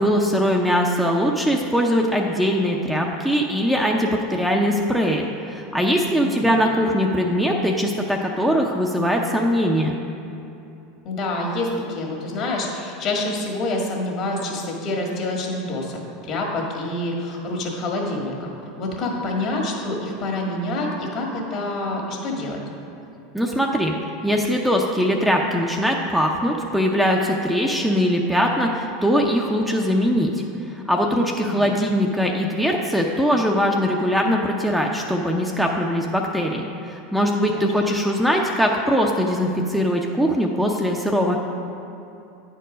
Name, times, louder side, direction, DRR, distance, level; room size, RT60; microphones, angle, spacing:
voice 1, 0.0-10.0 23.3-23.9 24.2-30.3 30.9-41.4, equal, ahead, 0 dB, 0.6 m, -21 dB
voice 2, 6.2-6.6 11.0-18.5 18.8-22.6 31.4-31.7 37.5-37.9, left 2 dB, 50° left, 0 dB, 1.8 m, -27 dB
9.1 x 4.6 x 5.0 m, 2.8 s
hypercardioid pair, 100°, 0 cm